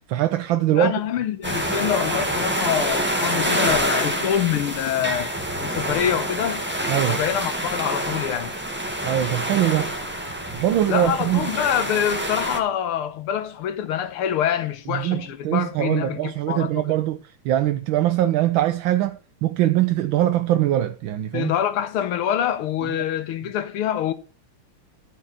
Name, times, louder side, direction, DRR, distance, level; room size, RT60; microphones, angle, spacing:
voice 1, 0.1-1.0 6.9-7.2 9.0-9.9 10.5-11.5 14.9-21.5, right 13 dB, 70° right, 1.4 m, -22 dB
voice 2, 0.7-5.3 5.6-6.6 7.1-8.6 10.9-17.0 21.3-24.1, left 10 dB, 85° left, 1.9 m, -25 dB
sound 1, 1.4-12.6, right 1 dB, 5° right, 1.6 m, -27 dB
12.5 x 5.3 x 7.3 m
omnidirectional pair, 2.3 m